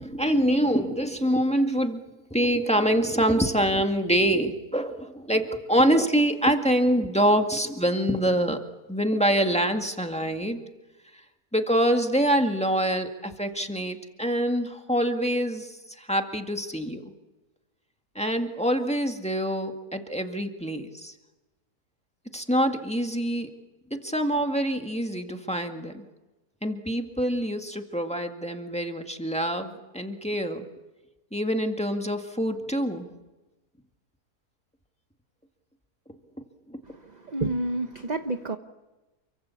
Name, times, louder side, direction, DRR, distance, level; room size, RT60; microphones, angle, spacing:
voice 1, 0.0-2.0 2.3-8.6 8.9-10.6 11.5-17.1 18.2-21.1 22.3-23.5 23.9-26.0 26.6-30.6 31.3-33.1 36.7-36.8, equal, 5° left, 4 dB, 1.9 m, -25 dB
voice 2, 36.9-38.6, right 2 dB, 30° right, 8 dB, 1.0 m, -30 dB
29.0 x 24.0 x 7.1 m, 1.1 s
omnidirectional pair, 1.7 m